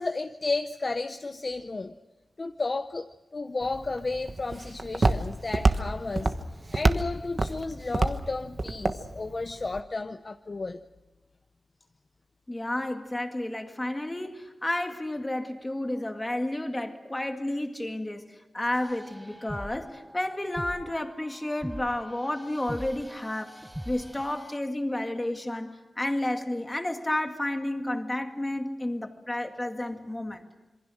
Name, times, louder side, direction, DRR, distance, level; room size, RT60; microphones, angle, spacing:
voice 1, 0.0-2.0 2.4-10.8, left 3 dB, 35° left, 0.7 m, -33 dB
Walk footsteps, 3.6-9.8, right 2 dB, 35° right, 1.2 m, -28 dB
voice 2, 12.5-23.5 23.9-30.5, left 1 dB, 15° left, 2.0 m, -31 dB
sound 1, 18.7-24.6, equal, 5° right, 0.9 m, -43 dB
27.0 x 23.5 x 6.4 m
wide cardioid pair, 135°, 0 cm